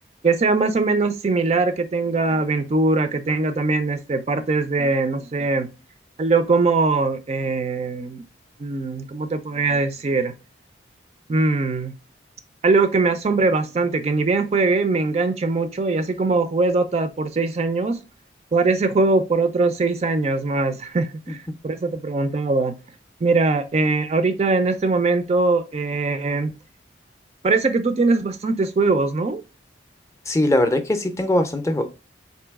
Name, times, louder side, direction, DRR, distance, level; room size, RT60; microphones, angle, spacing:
voice 1, 0.2-5.7 6.2-8.2 8.6-10.3 11.3-11.9 12.6-18.0 18.5-22.7 23.2-26.5 27.4-29.4, right 3 dB, 35° right, 0.4 m, -21 dB
voice 2, 30.3-31.9, left 1 dB, 15° left, 0.5 m, -21 dB
3.8 x 2.7 x 3.4 m
head